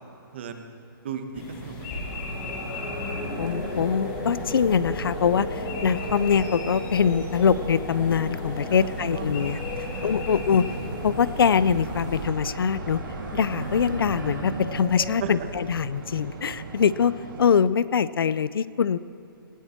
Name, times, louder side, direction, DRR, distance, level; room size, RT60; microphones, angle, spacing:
voice 1, 0.3-0.7 1.0-2.1 8.7-10.4 15.2-15.5, right 7 dB, 30° right, 7 dB, 1.0 m, -37 dB
sound 1, 1.3-12.3, left 1 dB, 15° left, 1.7 m, -37 dB
sound 2, 1.9-16.0, left 1 dB, 50° left, 3.3 m, -36 dB
sound 3, 2.7-17.4, right 3 dB, 60° right, 2.8 m, -39 dB
voice 2, 3.4-9.6 10.0-10.6 11.0-13.0 13.3-19.0, left 7 dB, 75° left, 17 dB, 0.5 m, -23 dB
19.0 x 15.0 x 4.4 m, 2.9 s
hypercardioid pair, 180°, 12 cm